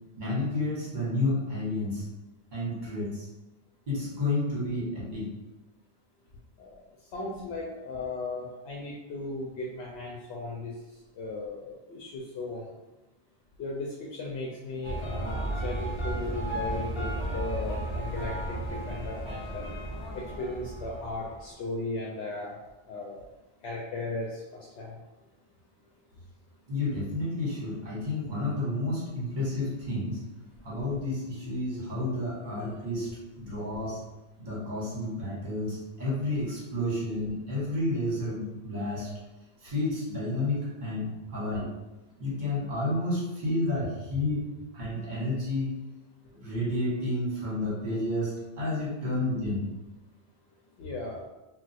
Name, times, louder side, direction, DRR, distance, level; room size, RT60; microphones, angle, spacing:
voice 1, 0.2-2.0 2.5-3.3 3.9-5.3 26.7-30.2 30.6-33.1 33.4-34.0 34.4-39.1 39.6-41.7 42.2-44.4 44.7-45.7 46.3-49.7, left 2 dB, 45° right, -6 dB, 1.3 m, -30 dB
voice 2, 7.1-10.7 11.2-12.6 13.6-19.7 20.1-22.6 22.9-23.3 23.6-24.4 24.8-24.9 32.4-32.7 50.8-51.3, left 2 dB, 80° left, -3 dB, 0.8 m, -36 dB
sound 1, 14.8-21.5, right 1 dB, 30° left, 0.7 m, -34 dB
2.3 x 2.3 x 4.0 m, 1.0 s
omnidirectional pair, 1.1 m